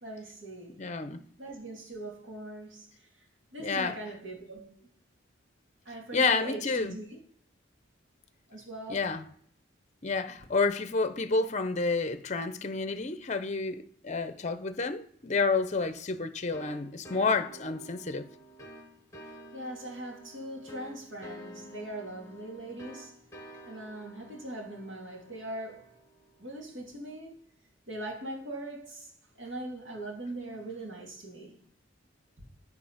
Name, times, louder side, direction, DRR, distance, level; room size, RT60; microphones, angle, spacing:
voice 1, 0.0-0.9 1.4-3.1 3.5-4.9 5.8-7.2 8.5-9.0 19.2-25.9 26.4-27.4 27.9-29.1 29.4-31.6, right 1 dB, 75° right, 2.3 m, -41 dB
voice 2, 0.8-1.2 3.6-4.0 6.1-7.0 8.9-9.2 10.0-18.3, left 4 dB, 35° left, 0.6 m, -29 dB
sound 1, 16.5-27.0, right 1 dB, 15° left, 1.0 m, -50 dB
11.5 x 3.9 x 5.8 m
head